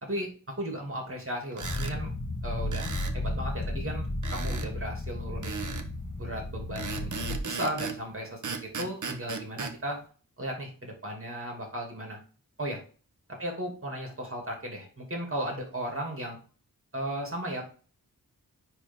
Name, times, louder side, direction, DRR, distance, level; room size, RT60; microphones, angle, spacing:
voice 1, 0.6-2.1 2.4-5.6 6.2-10.0 10.4-12.2 12.6-12.8 13.4-16.4 16.9-17.6, right 1 dB, 40° right, 0 dB, 2.7 m, -35 dB
sound 1, 1.5-2.0 2.7-3.2 4.2-4.7 5.4-5.9 6.8-8.0 8.4-9.8, right 5 dB, 55° right, 0.9 m, -36 dB
sound 2, 1.6-7.4, left 1 dB, 30° left, 1.3 m, -33 dB
9.8 x 3.8 x 3.7 m, 0.39 s
wide cardioid pair, 90°, 35 cm